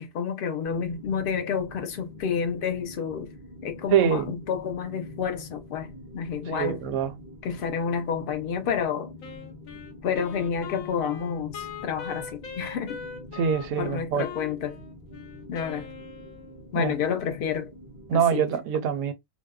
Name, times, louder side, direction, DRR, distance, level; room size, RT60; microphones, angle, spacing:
voice 1, 0.0-3.3 3.6-6.8 7.4-9.1 10.0-13.0 13.8-14.8 15.5-15.9 16.7-17.7 18.1-18.4, left 7 dB, 55° left, 0.6 m, -29 dB
sound 1, 0.6-18.2, left 1 dB, 30° left, 0.9 m, -45 dB
voice 2, 3.9-4.3 6.5-7.1 13.3-14.3 16.7-16.9 18.1-19.1, right 8 dB, 75° right, 1.0 m, -24 dB
Wind instrument woodwind instrument, 9.2-16.7, left 7 dB, 85° left, 1.1 m, -41 dB
2.7 x 2.0 x 2.3 m
omnidirectional pair, 1.4 m